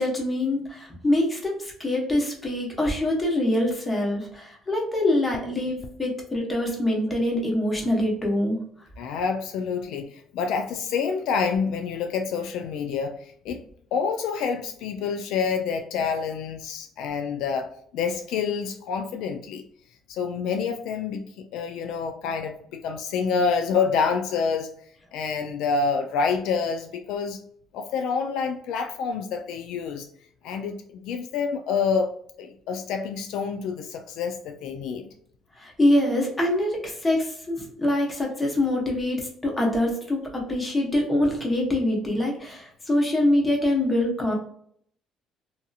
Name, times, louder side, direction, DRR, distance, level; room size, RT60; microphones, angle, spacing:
voice 1, 0.0-8.6 35.6-44.3, left 1 dB, 20° left, -1 dB, 1.0 m, -24 dB
voice 2, 9.0-13.2 13.4-13.6 13.9-19.6 20.1-21.2 21.5-24.7 25.1-27.4 27.7-30.1 30.4-32.1 32.4-35.1, left 5 dB, 80° left, 6 dB, 0.3 m, -27 dB
2.7 x 2.6 x 2.3 m, 0.64 s
cardioid pair, 110°, 0 cm